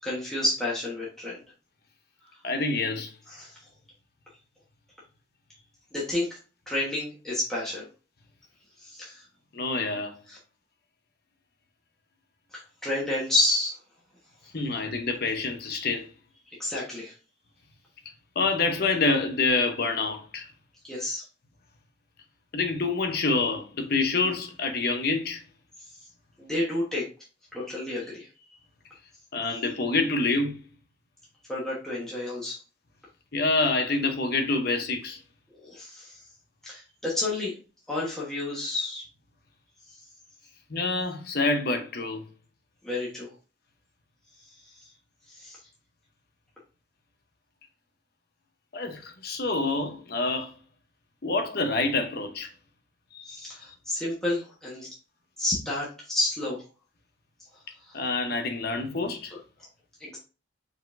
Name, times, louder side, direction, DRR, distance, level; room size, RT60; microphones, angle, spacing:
voice 1, 0.0-1.4 3.3-3.7 5.9-6.3 6.7-7.9 8.8-9.2 10.3-10.4 12.5-13.7 16.5-17.1 20.8-21.2 25.8-25.9 26.4-27.0 27.5-28.3 31.5-32.6 35.5-36.2 36.6-37.6 37.9-39.0 39.9-40.0 42.8-43.3 44.5-44.9 45.3-45.6 53.3-54.9 55.4-56.6 57.8-58.0 60.0-60.2, left 1 dB, 5° left, 1.2 m, -30 dB
voice 2, 2.4-3.1 9.5-10.2 14.5-16.1 18.4-20.5 22.5-25.4 29.3-30.6 33.3-35.2 40.7-42.2 48.7-50.5 51.2-52.5 53.1-53.4 57.9-59.3, left 3 dB, 55° left, 0.8 m, -27 dB
4.8 x 3.9 x 2.5 m
head